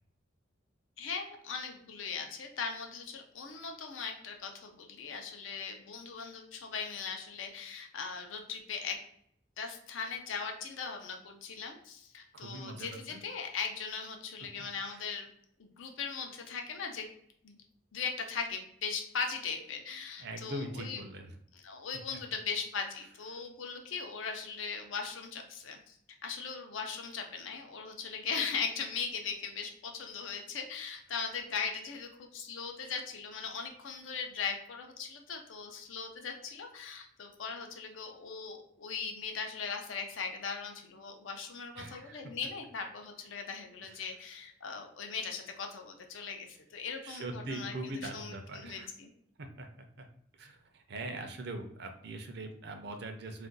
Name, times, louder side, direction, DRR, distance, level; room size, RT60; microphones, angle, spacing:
voice 1, 1.0-9.0 9.6-15.3 15.6-17.1 17.4-17.6 17.9-21.0 21.6-47.7 48.0-49.1, left 5 dB, 80° left, 4 dB, 0.5 m, -39 dB
voice 2, 12.3-13.2 14.9-15.0 20.2-21.3 23.3-23.4 41.8-42.2 43.8-44.1 47.0-48.9 49.4-49.7 50.0-50.1 50.3-53.5, right 2 dB, 60° right, 5 dB, 0.5 m, -42 dB
2.5 x 2.2 x 3.7 m, 0.68 s
head